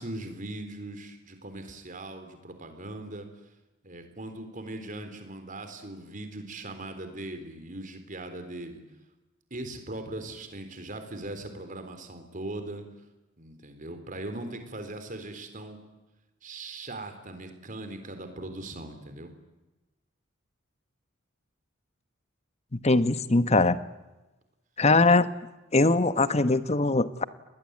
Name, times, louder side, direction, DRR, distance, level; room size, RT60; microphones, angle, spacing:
voice 1, 0.0-3.3 3.8-8.8 9.5-12.8 13.4-15.8 16.4-19.3, right 2 dB, 40° right, 8 dB, 3.8 m, -39 dB
voice 2, 22.7-23.8 24.8-25.3 25.7-27.2, left 3 dB, 30° left, 13 dB, 1.1 m, -21 dB
27.5 x 20.5 x 9.6 m, 1.0 s
head